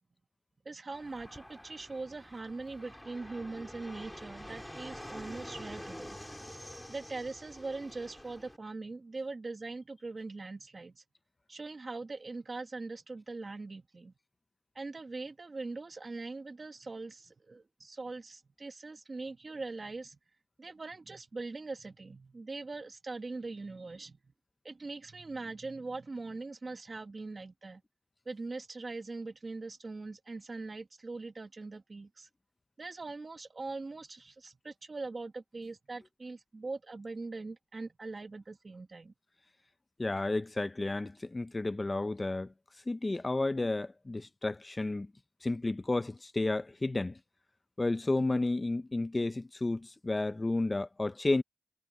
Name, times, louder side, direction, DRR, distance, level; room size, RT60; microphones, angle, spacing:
voice 1, 0.6-6.2 6.9-11.0 11.5-14.1 14.7-20.2 20.6-24.3 24.6-27.8 28.2-32.3 32.8-39.1, right 3 dB, 55° right, 1.4 m, -42 dB
Fixed-wing aircraft airplane, 0.9-8.6, left 1 dB, 10° left, 4.2 m, -47 dB
voice 2, 40.0-42.5 42.9-45.1 45.4-47.2 47.8-51.4, left 2 dB, 40° left, 0.7 m, -32 dB
cardioid pair, 45°, 0 cm